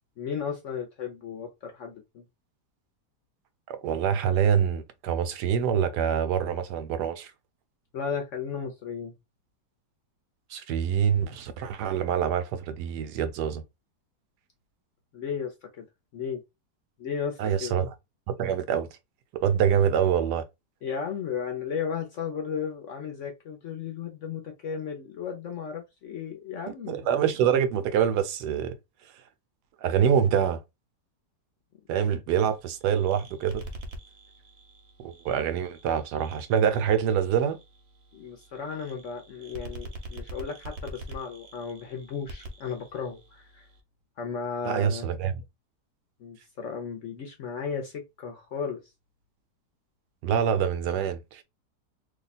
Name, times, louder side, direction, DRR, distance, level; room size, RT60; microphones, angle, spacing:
voice 1, 0.2-2.3 7.9-9.1 15.1-15.8 16.1-16.4 17.0-17.7 20.8-27.1 38.1-43.7 44.2-45.1 46.2-48.8, left 6 dB, 60° left, 0.8 m, -35 dB
voice 2, 3.7-7.3 10.5-13.6 17.4-17.9 18.3-18.9 19.4-20.4 26.7-28.7 29.8-30.6 31.9-33.6 35.0-37.6 44.6-45.4 50.2-51.4, right 8 dB, 75° right, 1.1 m, -25 dB
sound 1, 32.5-43.8, right 1 dB, 50° right, 0.9 m, -45 dB
2.9 x 2.2 x 4.1 m
omnidirectional pair, 1.8 m